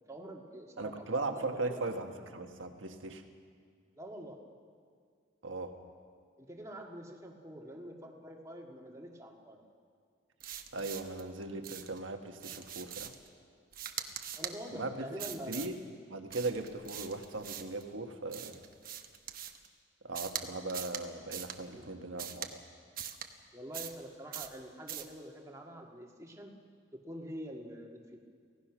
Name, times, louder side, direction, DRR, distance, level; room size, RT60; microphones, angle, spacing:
voice 1, 0.1-1.8 4.0-4.4 6.4-9.6 14.4-15.7 21.7-21.9 23.5-26.5 26.9-28.2, equal, 15° right, 0 dB, 1.9 m, -46 dB
voice 2, 0.8-3.2 5.4-5.7 10.7-13.1 14.7-15.0 15.5-15.8 16.1-18.6 20.0-22.6, right 2 dB, 75° right, 5 dB, 1.5 m, -38 dB
sound 1, 10.4-11.2 11.6-12.0 12.4-13.3 13.7-14.6 15.2-15.7 16.3-17.8 18.3-19.7 20.1-20.4 20.7-21.0 21.3-21.6 22.2-22.5 23.0-23.3 23.7-24.0 24.3-24.6 24.9-25.1, right 10 dB, 45° right, 1.1 m, -42 dB
26.0 x 16.5 x 6.2 m, 2.1 s
head